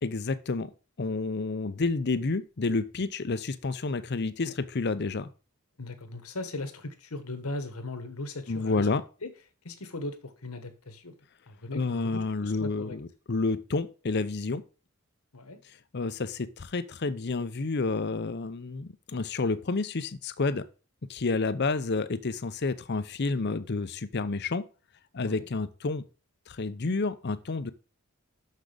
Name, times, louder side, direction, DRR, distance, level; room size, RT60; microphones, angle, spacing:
voice 1, 0.0-0.7 1.0-5.3 8.5-9.0 11.7-14.6 15.9-20.6 21.1-24.6 25.1-26.0 26.5-27.7, left 3 dB, 50° left, 0.6 m, -30 dB
voice 2, 5.8-8.9 9.2-9.3 9.6-11.1 11.5-13.0 15.3-15.6 25.2-25.5, left 2 dB, 80° left, 1.4 m, -38 dB
6.5 x 6.2 x 5.0 m
head